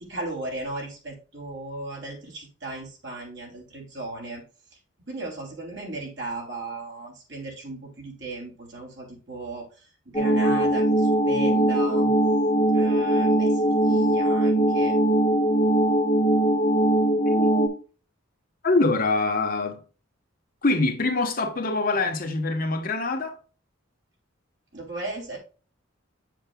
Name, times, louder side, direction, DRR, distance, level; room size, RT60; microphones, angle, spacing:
voice 1, 0.0-4.4 5.1-12.1 12.7-15.0 24.7-25.4, right 2 dB, 60° right, 3.2 m, -36 dB
sound 1, 10.1-17.7, right 1 dB, 20° left, 1.5 m, -21 dB
voice 2, 17.2-17.8 18.6-19.8 20.6-23.4, left 3 dB, 45° left, 1.2 m, -24 dB
7.5 x 7.1 x 2.3 m
head